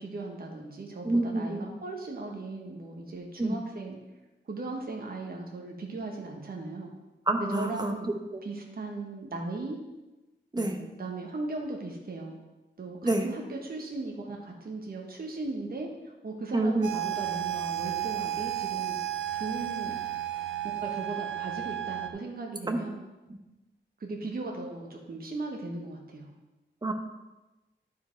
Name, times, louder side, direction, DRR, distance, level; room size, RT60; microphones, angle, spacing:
voice 1, 0.0-4.0 4.4-6.9 7.4-8.1 8.4-9.8 10.6-12.4 12.8-19.0 19.3-20.0 20.8-23.0 24.0-26.3, right 2 dB, 50° right, 1 dB, 1.2 m, -37 dB
voice 2, 1.0-1.7 3.4-3.6 7.3-7.9 8.3-8.4 10.5-10.8 13.0-13.3 16.5-16.9 22.7-22.8 26.8-26.9, right 2 dB, 20° right, 4 dB, 1.0 m, -27 dB
sound 1, 16.8-22.1, right 12 dB, 85° right, 0.6 m, -33 dB
11.0 x 4.9 x 4.5 m, 1.1 s
wide cardioid pair, 120°, 19 cm